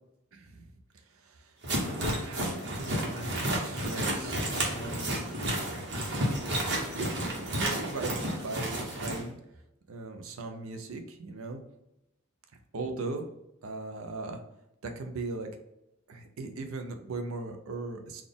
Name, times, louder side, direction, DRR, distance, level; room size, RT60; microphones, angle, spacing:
voice 1, 0.3-0.7 1.1-1.5 1.8-5.2 5.7-5.9 6.7-9.4 9.9-11.6 12.7-13.2 13.6-14.4 14.8-15.5 16.1-18.2, right 3 dB, 80° right, 5 dB, 0.6 m, -39 dB
sound 1, 1.6-9.2, right 1 dB, 55° right, 1.0 m, -31 dB
4.1 x 2.4 x 3.5 m, 0.87 s
head